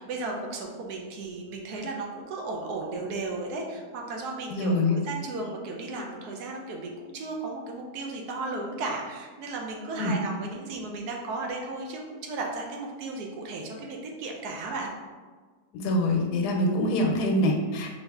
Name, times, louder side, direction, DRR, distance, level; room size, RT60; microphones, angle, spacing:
voice 1, 0.0-14.9, right 3 dB, 80° right, 1 dB, 1.2 m, -35 dB
voice 2, 4.5-5.0 10.0-10.2 15.7-17.9, left 1 dB, 85° left, 1 dB, 1.1 m, -25 dB
3.8 x 2.6 x 3.4 m, 1.4 s
omnidirectional pair, 1.7 m